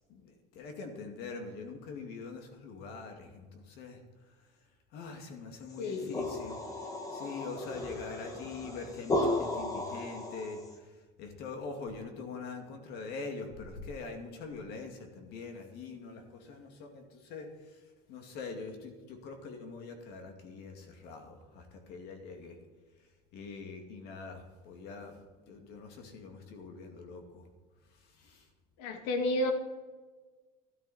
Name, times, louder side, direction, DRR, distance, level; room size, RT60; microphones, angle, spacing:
voice 1, 0.1-4.0 4.3-4.5 4.9-6.6 7.1-22.6 23.3-27.5 27.9-28.5, left 4 dB, 55° left, 4 dB, 2.3 m, -44 dB
voice 2, 5.8-6.1 28.8-29.5, left 1 dB, 80° left, 6 dB, 1.9 m, -31 dB
sound 1, 5.8-10.7, left 2 dB, 15° left, 1.4 m, -35 dB
13.5 x 12.5 x 4.3 m, 1.3 s
cardioid pair, 160°, 20 cm